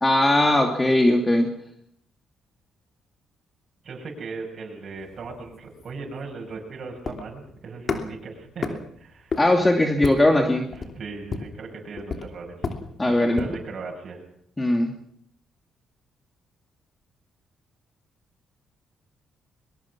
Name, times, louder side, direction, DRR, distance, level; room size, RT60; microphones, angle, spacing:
voice 1, 0.0-1.5 9.4-10.7 13.0-13.4 14.6-14.9, left 1 dB, 15° left, 3 dB, 2.7 m, -19 dB
voice 2, 3.8-9.3 10.8-12.7 13.0-14.2, right 4 dB, 50° right, -2 dB, 6.7 m, -38 dB
sound 1, 5.0-13.7, left 4 dB, 45° left, 2.9 m, -34 dB
22.0 x 22.0 x 6.1 m, 0.68 s
cardioid pair, 90°, 0 cm